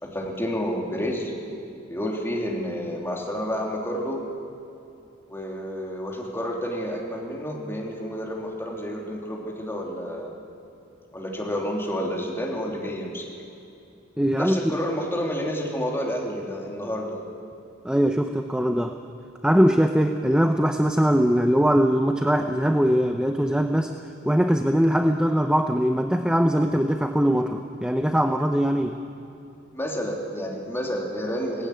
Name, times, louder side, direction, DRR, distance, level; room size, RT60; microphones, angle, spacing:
voice 1, 0.0-1.3 1.9-4.2 5.3-10.3 11.1-13.2 14.4-17.2 29.7-31.7, equal, 10° left, -2 dB, 3.0 m, -30 dB
voice 2, 14.2-14.7 17.8-19.0 19.4-23.9 24.2-29.0, equal, 5° right, 5 dB, 0.7 m, -21 dB
18.0 x 16.5 x 9.5 m, 2.7 s
head